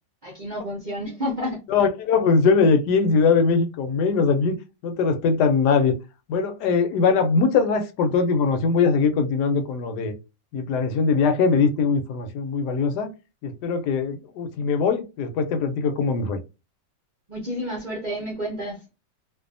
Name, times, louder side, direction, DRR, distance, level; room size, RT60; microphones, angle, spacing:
voice 1, 0.2-1.6 17.3-18.8, equal, 45° right, 0.5 m, -30 dB
voice 2, 1.7-4.6 4.8-5.9 6.3-10.1 10.5-13.1 13.4-16.4, left 5 dB, 75° left, 1.1 m, -21 dB
2.6 x 2.4 x 2.5 m
omnidirectional pair, 1.8 m